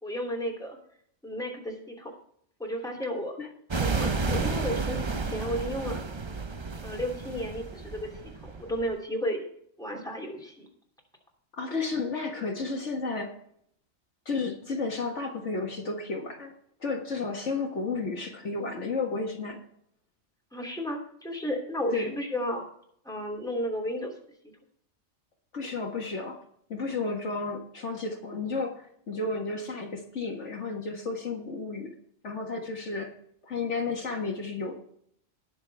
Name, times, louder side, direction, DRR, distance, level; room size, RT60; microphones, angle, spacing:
voice 1, 0.0-0.8 1.2-2.1 2.6-3.4 3.8-6.1 6.8-8.1 8.4-9.5 9.8-10.7 17.6-17.7 20.5-22.6 23.0-24.1, equal, 5° left, -1 dB, 2.8 m, -33 dB
sound 1, 3.7-8.9, right 4 dB, 30° right, 0.6 m, -31 dB
voice 2, 11.5-13.3 14.3-16.5 16.8-19.6 21.9-22.1 25.5-26.4 26.7-31.9 32.2-33.1 33.4-34.7, left 4 dB, 60° left, 1 dB, 1.9 m, -32 dB
19.5 x 6.6 x 3.5 m, 0.67 s
omnidirectional pair, 1.3 m